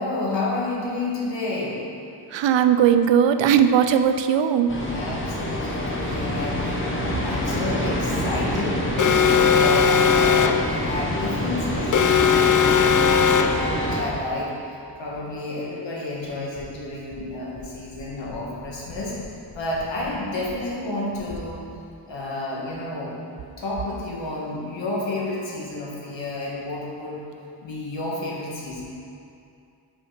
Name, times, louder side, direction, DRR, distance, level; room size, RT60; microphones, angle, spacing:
voice 1, 0.0-1.9 4.9-6.9 7.2-8.8 9.2-14.5 15.0-19.1 19.5-21.6 22.1-23.1 23.6-27.2 27.6-28.8, left 2 dB, 85° left, -5 dB, 1.6 m, -30 dB
voice 2, 2.3-4.7, right 8 dB, 80° right, 9 dB, 0.5 m, -18 dB
sound 1, 4.7-14.0, left 1 dB, 25° left, 1.1 m, -27 dB
Alarm, 9.0-10.7 11.9-13.7, left 7 dB, 45° left, 0.4 m, -18 dB
5.7 x 5.3 x 5.0 m, 2.5 s
cardioid pair, 75°, 43 cm